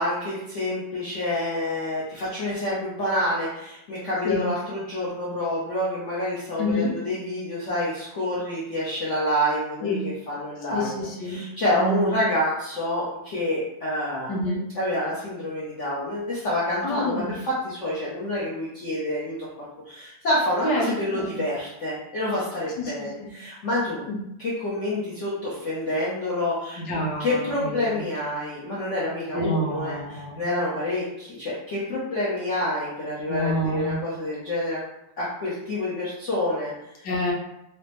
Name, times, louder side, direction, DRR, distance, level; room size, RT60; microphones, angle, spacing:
voice 1, 0.0-10.9 11.3-14.3 14.8-19.4 19.9-24.0 24.4-34.8 35.2-37.0, left 1 dB, 75° left, -8 dB, 0.6 m, -28 dB
voice 2, 6.6-6.9 9.8-10.1 10.7-11.4 11.7-12.2 14.3-14.7 16.8-17.4 20.6-20.9 21.1-21.4 22.8-23.3 24.1-24.2 26.8-28.0 29.3-30.4 33.3-33.9 37.0-37.3, left 1 dB, 60° left, -4 dB, 1.2 m, -28 dB
4.9 x 2.0 x 3.0 m, 0.85 s
omnidirectional pair, 2.4 m